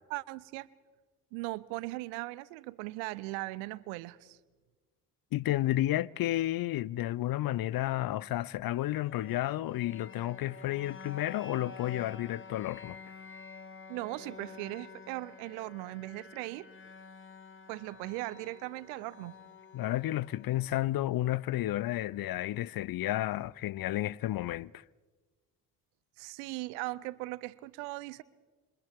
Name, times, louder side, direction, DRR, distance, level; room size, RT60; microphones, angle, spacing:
voice 1, 0.1-0.7 1.3-4.4 13.9-16.7 17.7-19.4 26.2-28.2, right 21 dB, 75° right, 0.7 m, -39 dB
voice 2, 5.3-13.0 19.7-24.8, left 15 dB, 50° left, 0.6 m, -32 dB
sound 1, 8.8-22.7, left 5 dB, 25° left, 1.9 m, -50 dB
27.5 x 27.0 x 3.6 m
hypercardioid pair, 40°, 46 cm